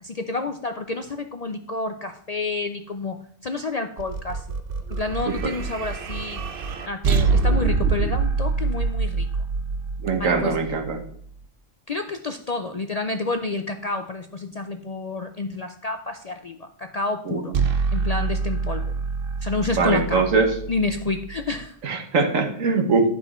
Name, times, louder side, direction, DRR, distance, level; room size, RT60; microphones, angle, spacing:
voice 1, 0.0-4.4 4.9-6.4 6.9-9.3 10.2-10.6 11.9-17.6 17.9-18.9 19.4-20.2 20.7-21.8, left 3 dB, 50° left, 6 dB, 0.4 m, -29 dB
sound 1, 4.0-11.3 17.5-21.6, right 4 dB, 50° right, 0.9 m, -26 dB
voice 2, 10.0-11.0 17.3-17.4 19.7-20.5 21.8-23.1, right 4 dB, 90° right, 5 dB, 1.7 m, -22 dB
10.5 x 5.7 x 4.3 m, 0.63 s
omnidirectional pair, 1.3 m